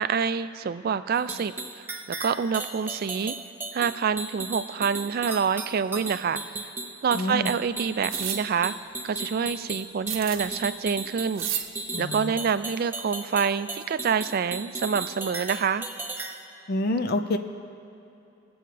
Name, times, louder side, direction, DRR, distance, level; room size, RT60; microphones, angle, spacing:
voice 1, 0.0-3.4 3.7-6.6 7.0-8.7 9.0-11.6 12.0-15.8, right 6 dB, 45° right, 13 dB, 0.3 m, -27 dB
sound 1, 1.1-16.4, right 3 dB, 10° right, 0.6 m, -36 dB
voice 2, 7.1-7.5 11.9-12.4 16.7-17.4, left 2 dB, 50° left, 7 dB, 0.5 m, -27 dB
sound 2, 8.1-8.4 10.1-10.5 11.3-11.7, right 10 dB, 65° right, 0.7 m, -31 dB
21.0 x 7.8 x 3.3 m, 2.9 s
head